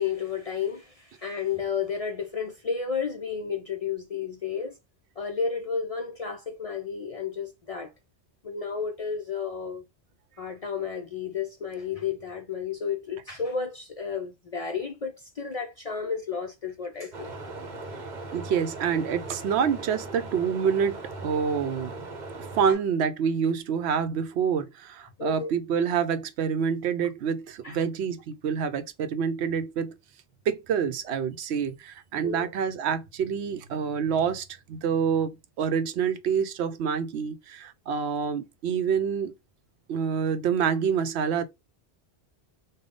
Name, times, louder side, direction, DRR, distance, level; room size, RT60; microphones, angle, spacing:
voice 1, 0.0-4.8 5.2-7.9 8.4-9.8 10.4-17.3 22.7-22.8 25.2-25.5 27.6-27.8 32.2-32.5, left 6 dB, 50° left, 0.4 m, -32 dB
sound 1, 17.1-22.7, right 2 dB, 45° right, 0.8 m, -39 dB
voice 2, 18.3-22.1 22.5-30.0 30.5-39.3 39.9-41.4, right 7 dB, 75° right, 0.8 m, -27 dB
3.4 x 2.3 x 3.7 m
omnidirectional pair, 1.1 m